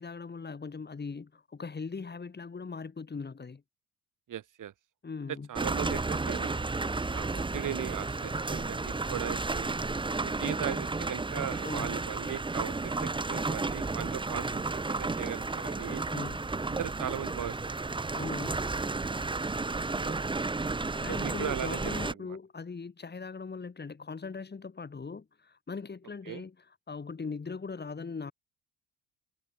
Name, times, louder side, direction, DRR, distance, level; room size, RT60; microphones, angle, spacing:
voice 1, 0.0-3.6 5.0-5.5 11.6-12.0 16.1-16.5 18.1-18.6 21.0-28.3, left 4 dB, 25° left, 2.9 m, -40 dB
voice 2, 4.3-4.7 5.5-6.6 7.1-9.7 10.2-16.0 16.7-17.9 19.7-20.2 21.1-22.1 26.3-26.4, right 11 dB, 50° right, 2.2 m, -38 dB
sound 1, 5.6-22.1, right 3 dB, 10° right, 0.9 m, -32 dB
supercardioid pair, 70°, 39 cm